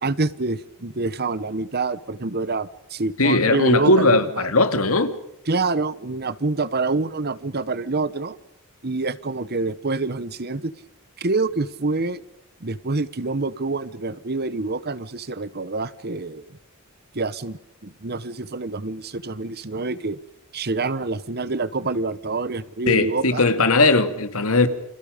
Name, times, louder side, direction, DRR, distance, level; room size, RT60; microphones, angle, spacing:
voice 1, 0.0-4.5 5.5-8.4 8.8-10.7 11.2-12.2 12.6-16.6 17.1-20.2 20.5-23.5, right 3 dB, 45° right, 1.2 m, -26 dB
voice 2, 3.2-5.1 22.9-24.7, left 2 dB, 75° left, 2.4 m, -18 dB
29.0 x 27.0 x 5.3 m
head